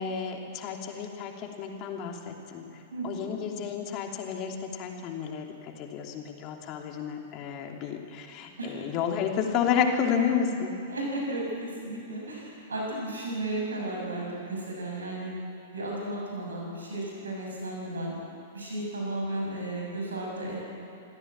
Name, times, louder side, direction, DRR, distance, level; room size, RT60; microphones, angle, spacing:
voice 1, 0.0-2.6 3.0-10.7, left 7 dB, 35° left, 2 dB, 2.9 m, -31 dB
voice 2, 2.9-3.3 8.6-8.9 10.9-15.3 15.7-18.1 18.5-20.6, right 1 dB, 75° right, -2 dB, 6.3 m, -34 dB
25.0 x 15.5 x 8.7 m, 2.7 s
figure-of-eight pair, 100°, 0 cm